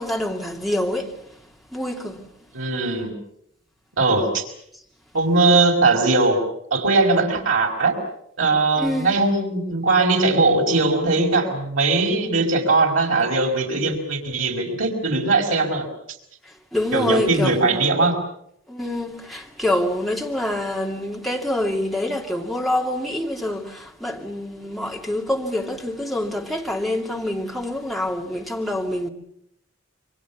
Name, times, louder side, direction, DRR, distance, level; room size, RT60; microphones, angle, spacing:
voice 1, 0.0-1.4 1.7-2.3 8.8-9.2 16.4-17.6 18.7-29.1, left 1 dB, ahead, 2.5 m, -26 dB
voice 2, 2.5-3.1 3.9-4.4 5.1-6.4 6.7-8.0 8.4-15.8 16.9-18.2, right 3 dB, 80° right, 5.2 m, -20 dB
27.5 x 24.0 x 7.1 m
head